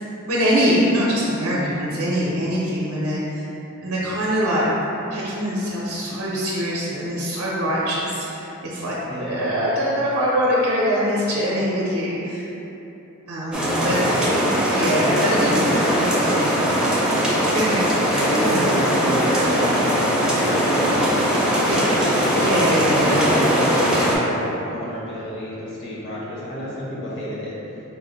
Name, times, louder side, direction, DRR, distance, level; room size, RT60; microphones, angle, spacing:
voice 1, 0.3-3.4 3.8-4.7 5.1-8.5 8.7-12.5 13.3-14.4 14.7-16.4 16.8-17.0 17.5-18.8 21.6-21.9 22.3-23.4, equal, 65° right, -6 dB, 0.6 m, -23 dB
voice 2, 9.1-9.6 13.7-14.8 18.1-22.6 23.0-27.6, equal, 55° left, -7 dB, 1.1 m, -30 dB
sound 1, 13.5-24.2, equal, 5° right, 0.6 m, -20 dB
4.5 x 2.0 x 3.9 m, 3.0 s
head